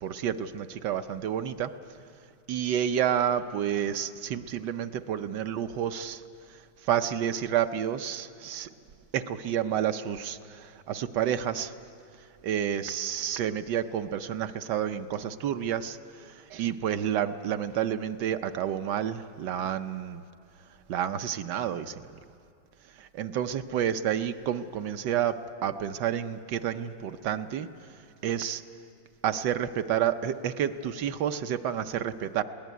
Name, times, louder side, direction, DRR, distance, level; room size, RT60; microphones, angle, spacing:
voice 1, 0.0-1.7 2.5-6.2 6.8-8.7 9.1-11.7 12.4-20.2 20.9-22.1 23.0-27.7 28.2-28.6 29.2-32.4, right 9 dB, 70° right, 9 dB, 1.3 m, -30 dB
21.0 x 17.5 x 9.4 m, 2.4 s
omnidirectional pair, 2.0 m